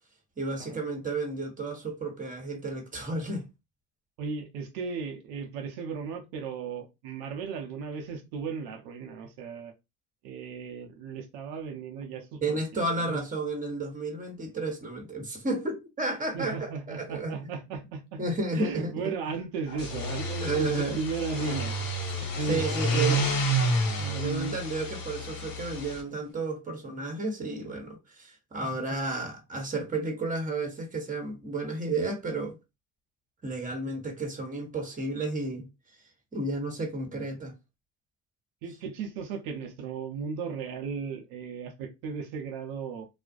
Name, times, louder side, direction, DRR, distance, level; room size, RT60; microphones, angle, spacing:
voice 1, 0.4-3.4 12.4-17.3 18.2-19.1 20.4-20.9 22.5-23.2 24.2-32.6 33.4-35.7 36.3-37.5, right 2 dB, 20° right, 1.0 m, -32 dB
voice 2, 4.2-9.7 10.2-13.2 16.3-18.2 18.5-21.8 22.1-22.7 22.9-23.2 24.0-24.6 38.6-43.1, right 5 dB, 85° right, 0.6 m, -36 dB
sound 1, 19.7-26.0, right 1 dB, 60° left, 1.1 m, -29 dB
2.4 x 2.1 x 2.4 m
supercardioid pair, 75°, 39 cm